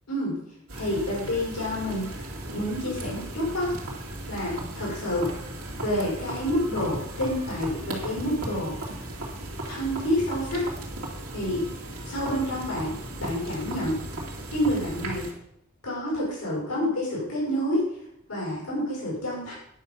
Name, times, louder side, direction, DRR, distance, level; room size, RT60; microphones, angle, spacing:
voice 1, 0.1-0.4 0.7-2.2 2.5-3.7 4.3-5.3 5.8-9.0 9.7-10.6 11.3-11.7 12.1-14.0 14.5-15.3 15.8-17.8 18.3-19.5, equal, 85° left, -5 dB, 5.3 m, -28 dB
sound 1, 0.7-15.3, right 1 dB, 75° right, 2.7 m, -36 dB
10.0 x 5.6 x 7.3 m, 0.76 s
head